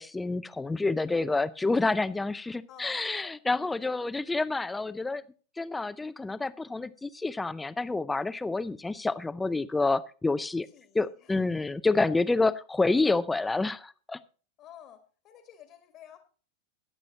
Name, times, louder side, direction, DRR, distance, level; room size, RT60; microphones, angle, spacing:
voice 1, 0.0-5.2 5.6-10.7 10.9-14.2, left 3 dB, 10° left, 16 dB, 0.5 m, -28 dB
voice 2, 2.7-3.4 10.7-11.4 14.6-15.0 15.2-16.2, left 9 dB, 35° left, 7 dB, 1.5 m, -51 dB
21.5 x 7.6 x 2.9 m, 0.39 s
figure-of-eight pair, 90°, 0 cm